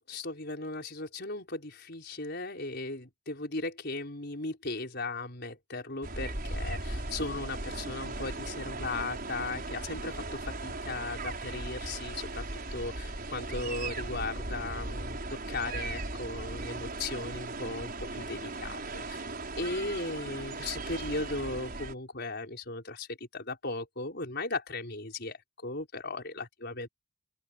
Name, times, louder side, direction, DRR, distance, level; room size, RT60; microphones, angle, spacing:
voice 1, 0.1-19.3 19.6-26.9, left 2 dB, 50° left, 5.5 m, -37 dB
sound 1, 6.0-21.9, right 2 dB, 45° right, 6.1 m, -37 dB
open air
head